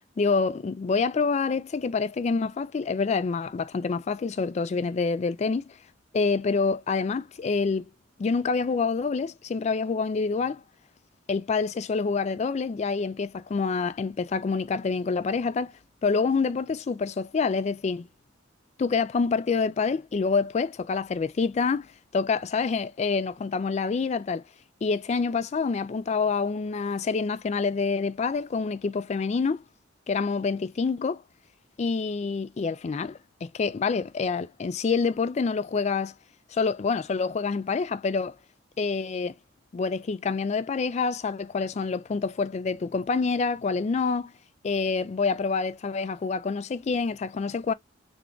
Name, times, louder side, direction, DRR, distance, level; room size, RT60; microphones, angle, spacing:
voice 1, 0.2-5.7 6.1-7.9 8.2-10.6 11.3-15.7 16.0-18.1 18.8-24.4 24.8-29.6 30.1-31.2 31.8-36.1 36.5-38.3 38.8-39.4 39.7-44.3 44.6-47.7, left 4 dB, 35° left, 0.3 m, -27 dB
3.5 x 2.4 x 3.7 m
head